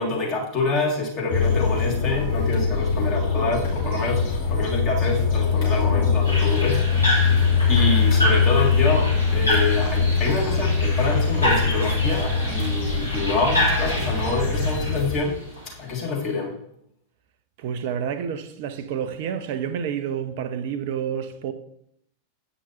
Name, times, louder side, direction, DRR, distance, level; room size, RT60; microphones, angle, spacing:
voice 1, 0.0-4.2 4.5-7.3 7.7-15.4 15.8-16.5, left 3 dB, 35° left, 1.6 m, -26 dB
sound 1, 1.3-15.2, left 5 dB, 60° left, 2.9 m, -22 dB
sound 2, 6.2-16.0, equal, 85° left, 1.8 m, -28 dB
voice 2, 17.6-21.5, right 8 dB, 50° right, 0.5 m, -29 dB
8.2 x 5.9 x 2.8 m
figure-of-eight pair, 90°, 0 cm